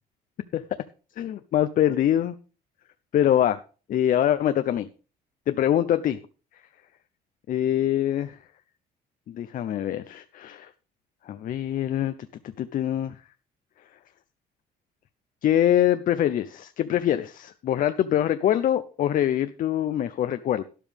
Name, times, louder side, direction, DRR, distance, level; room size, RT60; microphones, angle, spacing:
voice 1, 1.2-2.4 3.1-3.6 3.9-4.9 5.5-6.2 7.5-8.4 9.3-10.7 11.3-12.1 12.6-13.2 15.4-20.6, left 11 dB, 55° left, 0.6 m, -24 dB
12.0 x 10.0 x 3.5 m
cardioid pair, 110°, 17 cm